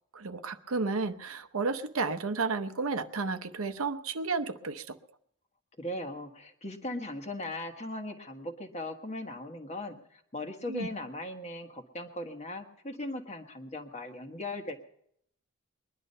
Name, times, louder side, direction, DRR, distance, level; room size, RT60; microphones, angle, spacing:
voice 1, 0.1-5.0 10.7-10.9, right 4 dB, 75° right, 10 dB, 0.8 m, -32 dB
voice 2, 5.8-14.8, left 1 dB, 30° left, 6 dB, 1.4 m, -38 dB
20.5 x 11.0 x 5.5 m, 0.71 s
head